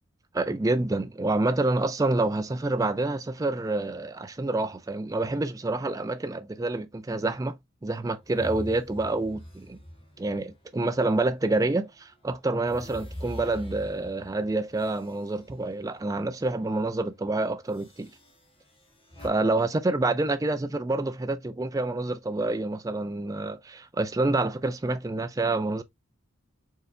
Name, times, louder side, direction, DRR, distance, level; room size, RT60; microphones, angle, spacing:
voice 1, 0.3-7.6 7.8-9.8 10.2-18.1 19.2-25.8, right 2 dB, 15° right, 0.3 m, -27 dB
sound 1, 8.2-11.6 12.0-16.3 16.6-16.9 17.7-19.3, equal, 25° left, 1.3 m, -45 dB
4.6 x 3.3 x 2.5 m
head